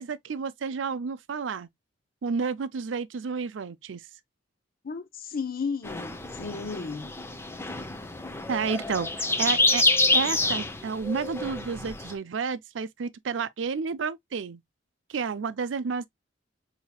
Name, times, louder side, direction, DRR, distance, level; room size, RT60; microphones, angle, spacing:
voice 1, 0.0-1.7 2.2-4.0 8.5-9.9 10.1-14.6 15.1-16.1, right 5 dB, 70° right, 0.5 m, -31 dB
voice 2, 4.8-7.1, left 5 dB, 50° left, 0.6 m, -34 dB
sound 1, 5.8-12.1, left 2 dB, 15° left, 0.6 m, -27 dB
5.6 x 2.8 x 2.2 m
head